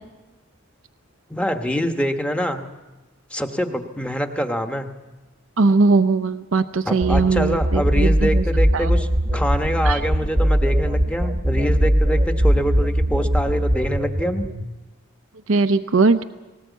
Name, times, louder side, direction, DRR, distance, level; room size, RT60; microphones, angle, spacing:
voice 1, 1.3-2.6 3.3-4.9 6.8-14.4, equal, 5° left, 5 dB, 1.1 m, -25 dB
voice 2, 5.6-8.4 8.7-8.9 9.8-10.0 15.5-16.2, right 3 dB, 75° right, 10 dB, 0.7 m, -19 dB
sound 1, 7.0-14.6, equal, 25° right, 1.0 m, -20 dB
19.0 x 18.5 x 8.2 m, 1.1 s
head